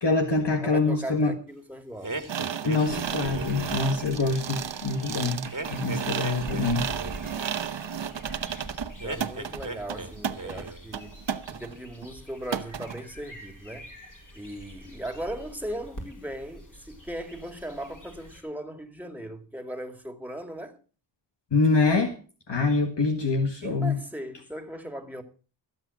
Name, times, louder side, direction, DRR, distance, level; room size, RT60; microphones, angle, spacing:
voice 1, 0.0-1.3 2.7-6.9 21.5-22.1 22.5-24.0, left 3 dB, 65° left, 1.8 m, -25 dB
voice 2, 0.6-2.3 9.0-13.9 14.3-20.8 23.6-25.2, right 1 dB, 5° right, 2.4 m, -38 dB
sound 1, 2.0-3.9 5.5-7.3 9.0-10.1 10.4-10.9, right 2 dB, 45° right, 1.9 m, -37 dB
sound 2, 2.3-11.8 12.0-12.1 12.5-13.0, right 7 dB, 65° right, 1.0 m, -33 dB
sound 3, 2.9-18.4, right 1 dB, 40° left, 4.4 m, -46 dB
13.5 x 7.9 x 7.2 m
wide cardioid pair, 60°, 46 cm